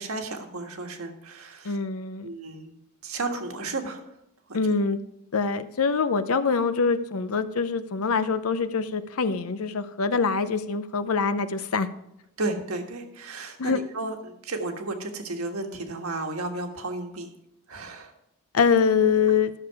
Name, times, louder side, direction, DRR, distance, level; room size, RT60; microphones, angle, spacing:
voice 1, 0.0-1.8 2.2-2.7 3.0-4.0 4.5-4.6 12.4-17.3 17.7-18.1, right 2 dB, 85° right, 4 dB, 1.6 m, -33 dB
voice 2, 1.6-2.3 4.5-5.0 5.3-11.9 13.6-13.8 18.5-19.5, left 5 dB, 80° left, 11 dB, 0.7 m, -24 dB
12.5 x 6.8 x 4.7 m, 0.81 s
head